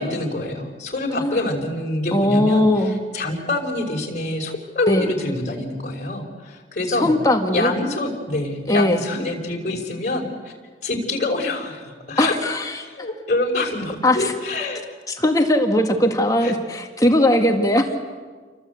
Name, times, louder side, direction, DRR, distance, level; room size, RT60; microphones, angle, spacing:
voice 1, 0.0-7.1 7.5-10.5 10.8-12.3 12.8-14.8 16.4-16.5 17.9-18.0, left 2 dB, 45° left, 1 dB, 5.4 m, -26 dB
voice 2, 2.1-3.0 4.9-5.1 6.9-7.7 8.7-9.0 12.2-12.9 14.0-14.3 15.1-17.9, left 1 dB, 20° left, 3 dB, 1.9 m, -19 dB
29.0 x 24.0 x 8.3 m, 1.5 s
head